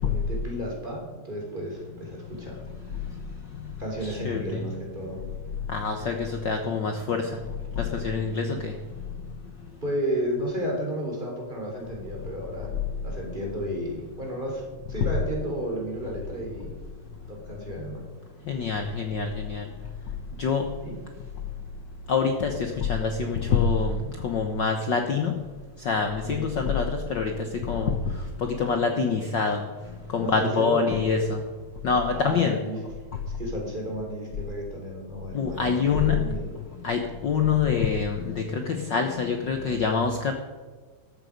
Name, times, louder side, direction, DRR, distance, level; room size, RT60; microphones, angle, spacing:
voice 1, 0.0-2.6 3.8-5.2 9.8-12.7 13.0-14.6 14.9-16.7 17.3-18.0 20.8-21.0 26.2-26.5 30.2-31.0 32.1-32.8 33.4-36.6, equal, 15° right, -1 dB, 3.5 m, -32 dB
voice 2, 4.0-4.6 5.7-7.3 7.8-8.7 18.5-19.6 20.4-20.7 22.1-24.0 24.2-25.3 25.8-27.9 28.4-29.6 30.1-31.4 31.8-32.6 35.3-36.2 36.8-40.3, left 5 dB, 70° left, 5 dB, 1.0 m, -25 dB
14.0 x 12.5 x 5.2 m, 1.4 s
omnidirectional pair, 3.3 m